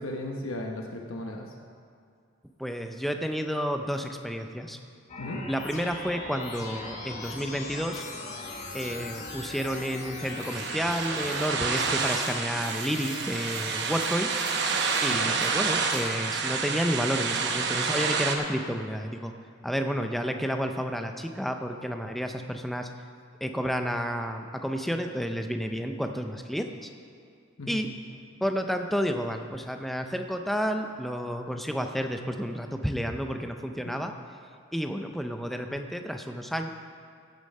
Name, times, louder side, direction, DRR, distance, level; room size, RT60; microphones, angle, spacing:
voice 1, 0.0-1.5 5.2-5.4 15.1-15.3 27.6-27.8 33.9-34.0, left 1 dB, 90° left, 1 dB, 1.0 m, -36 dB
voice 2, 2.6-4.8 5.5-8.0 8.7-14.3 15.0-19.3 19.6-22.9 23.4-26.9 27.7-27.9 28.4-34.1 34.7-36.7, equal, ahead, 5 dB, 0.5 m, -31 dB
sound 1, 5.1-16.0, left 2 dB, 35° left, 1.5 m, -40 dB
sound 2, 10.2-18.4, right 5 dB, 55° right, 1.0 m, -29 dB
15.5 x 6.9 x 5.4 m, 2.3 s
head